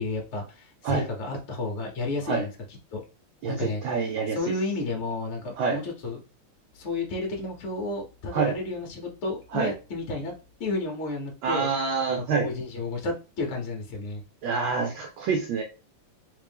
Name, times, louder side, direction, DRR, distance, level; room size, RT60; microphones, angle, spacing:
voice 1, 0.0-2.5 2.9-3.0 3.5-6.2 6.7-10.3 10.6-11.7 12.2-14.2, left 3 dB, 60° left, 1 dB, 0.7 m, -32 dB
voice 2, 3.4-4.4 5.6-5.8 8.3-8.5 9.5-9.7 11.4-12.5 14.4-15.6, right 5 dB, 70° right, 2 dB, 1.3 m, -26 dB
3.3 x 3.2 x 3.4 m, 0.33 s
omnidirectional pair, 2.4 m